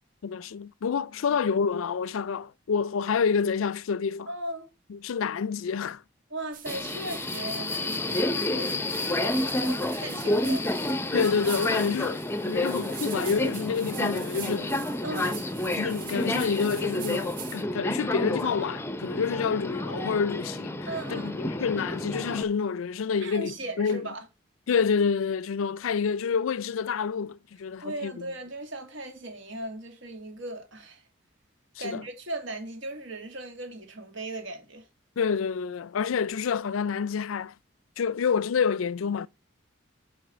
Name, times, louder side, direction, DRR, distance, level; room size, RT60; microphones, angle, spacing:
voice 1, 0.2-4.3 4.9-6.0 11.1-12.2 12.4-14.7 15.1-15.3 15.7-24.1 24.7-28.1 31.8-32.0 35.2-37.5 38.0-39.3, left 6 dB, 85° left, 0.4 m, -28 dB
voice 2, 4.3-4.7 6.3-10.7 15.0-15.4 20.8-21.5 23.2-24.2 27.8-31.0 31.8-34.9, right 2 dB, 70° right, 2.4 m, -37 dB
sound 1, 6.5-17.6, right 9 dB, 40° right, 0.9 m, -43 dB
Subway metro underground, 6.7-22.4, left 1 dB, 10° left, 0.6 m, -30 dB
7.1 x 5.6 x 6.8 m
head